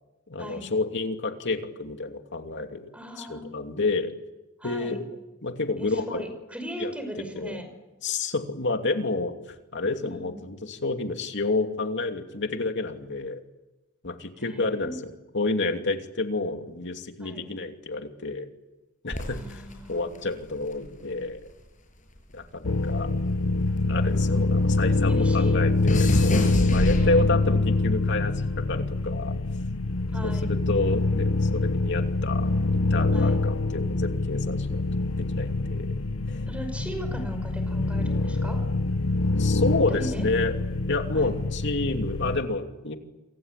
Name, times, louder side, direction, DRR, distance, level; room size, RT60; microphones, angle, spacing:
voice 1, 0.3-2.9 3.2-4.1 4.6-5.0 5.4-6.2 6.8-6.9 7.4-7.6 8.0-9.3 9.7-13.4 14.0-18.5 19.0-19.6 19.9-21.4 22.3-23.1 23.9-28.3 28.7-29.3 30.2-34.9 35.2-35.9 36.3-36.5 37.1-37.2 39.3-40.5 40.9-43.0, left 3 dB, 60° left, 5 dB, 2.8 m, -29 dB
voice 2, 2.9-3.5 4.6-5.0 5.8-7.7 10.0-10.5 14.4-15.0 17.2-17.5 19.3-20.2 25.1-25.6 26.8-27.6 30.1-30.5 33.1-33.5 36.5-38.6 39.9-40.3 41.1-41.3, equal, 5° right, 7 dB, 5.5 m, -38 dB
sound 1, 19.1-21.6 21.9-24.5 24.8-27.6 28.4-28.7, left 1 dB, 40° left, 6.8 m, -30 dB
sound 2, 22.6-42.4, left 2 dB, 90° left, 1.1 m, -25 dB
28.0 x 24.5 x 8.4 m, 1.0 s
head